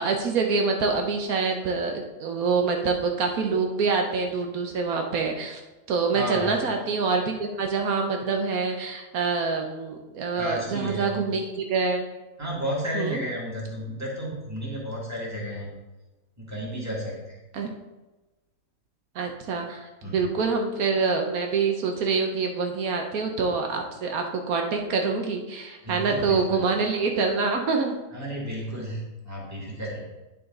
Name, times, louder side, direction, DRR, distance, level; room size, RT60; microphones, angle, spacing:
voice 1, 0.0-5.6 5.9-12.1 12.9-13.2 17.5-17.7 19.1-28.0, right 4 dB, 75° right, 3 dB, 1.2 m, -26 dB
voice 2, 6.1-6.5 10.3-11.1 12.4-15.7 16.4-17.4 20.0-20.3 25.8-26.6 28.1-30.0, equal, 10° right, -4 dB, 2.0 m, -32 dB
9.4 x 5.6 x 3.8 m, 1.1 s
omnidirectional pair, 1.5 m